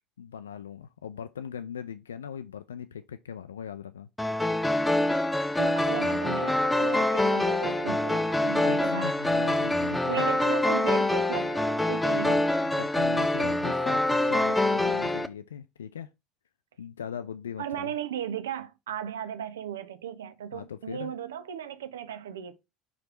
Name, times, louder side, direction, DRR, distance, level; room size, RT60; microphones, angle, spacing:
voice 1, 0.2-4.1 8.6-10.2 12.2-16.1 16.8-17.9 20.5-21.1, left 8 dB, 75° left, 0.3 m, -39 dB
sound 1, 4.2-15.3, left 1 dB, 5° left, 0.6 m, -25 dB
voice 2, 5.6-9.6 10.1-12.4 17.6-22.6, right 10 dB, 70° right, 0.6 m, -36 dB
5.1 x 4.7 x 4.4 m
figure-of-eight pair, 65°, 0 cm